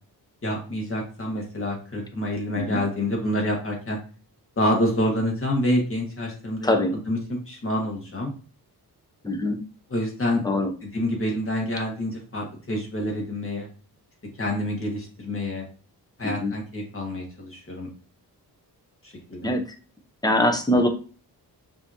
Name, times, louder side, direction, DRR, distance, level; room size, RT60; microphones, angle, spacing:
voice 1, 0.4-4.0 4.6-8.3 9.9-10.4 10.8-13.7 14.4-15.6 16.2-17.9 19.0-19.5, left 1 dB, 35° left, 0 dB, 1.5 m, -27 dB
voice 2, 9.2-9.6 10.4-10.7 16.2-16.5 19.4-19.6 20.2-20.9, left 1 dB, 10° left, 4 dB, 0.7 m, -22 dB
5.5 x 2.9 x 2.7 m, 0.37 s
wide cardioid pair, 115°, 39 cm